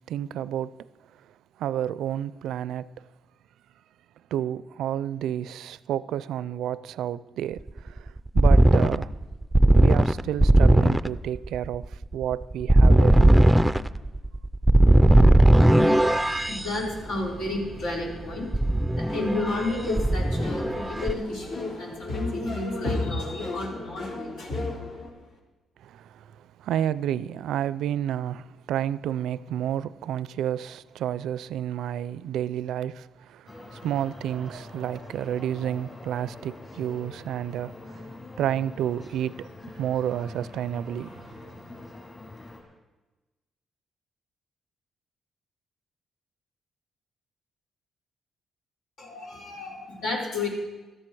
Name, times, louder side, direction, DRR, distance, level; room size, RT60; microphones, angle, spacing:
voice 1, 0.1-0.8 1.2-1.3 1.6-3.1 4.3-9.1 9.7-13.3 25.8-41.6, right 10 dB, 85° right, 0.4 m, -30 dB
sound 1, 7.6-16.6 18.5-19.7 20.0-21.1, right 1 dB, 5° right, 0.4 m, -18 dB
voice 2, 15.9-24.7 49.0-50.5, left 2 dB, 85° left, 4.6 m, -32 dB
sound 2, 19.1-25.1, left 3 dB, 70° left, 3.4 m, -36 dB
sound 3, 33.5-42.6, left 2 dB, 25° left, 6.1 m, -44 dB
17.0 x 13.5 x 4.7 m
cardioid pair, 115°, 0 cm